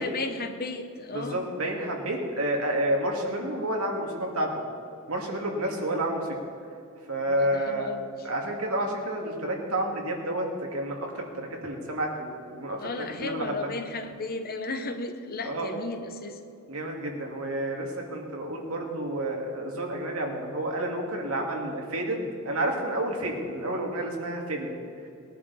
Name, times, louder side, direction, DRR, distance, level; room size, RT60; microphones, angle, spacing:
voice 1, 0.0-1.4 5.9-6.1 7.4-8.0 12.8-16.4, left 3 dB, 45° left, 7 dB, 1.0 m, -34 dB
voice 2, 1.1-4.5 5.1-6.4 7.1-7.9 8.2-13.7 15.4-15.7 16.7-24.7, right 1 dB, 80° right, 0 dB, 2.3 m, -30 dB
19.5 x 11.0 x 4.2 m, 2.7 s
head